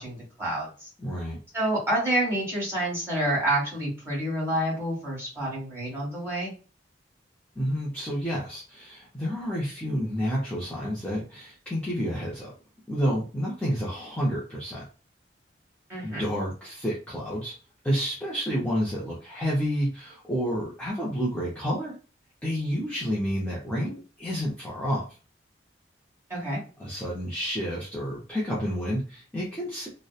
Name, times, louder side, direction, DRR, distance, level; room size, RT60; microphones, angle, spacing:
voice 1, 0.0-0.9 1.5-6.5 15.9-16.2 26.3-26.6, right 1 dB, 15° right, -6 dB, 1.4 m, -28 dB
voice 2, 1.0-1.4 7.6-12.5 12.9-14.8 16.0-17.6 17.8-22.0 22.4-25.1 26.8-29.9, equal, 5° left, -6 dB, 0.5 m, -29 dB
2.7 x 2.1 x 2.3 m, 0.36 s
head